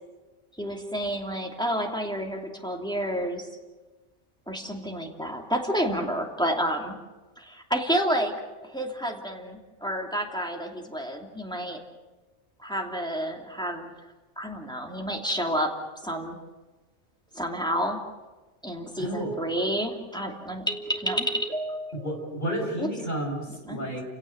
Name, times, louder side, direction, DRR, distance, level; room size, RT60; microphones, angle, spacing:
voice 1, 0.6-3.5 4.5-7.0 7.4-8.3 8.6-11.8 12.6-13.9 14.4-15.7 16.0-16.4 17.3-18.0 18.6-22.1 22.8-22.9 23.5-23.9, equal, 5° left, 1 dB, 2.8 m, -30 dB
voice 2, 19.0-19.3 22.0-24.0, right 1 dB, 40° left, 1 dB, 5.7 m, -31 dB
30.0 x 17.0 x 8.1 m, 1.2 s
omnidirectional pair, 1.2 m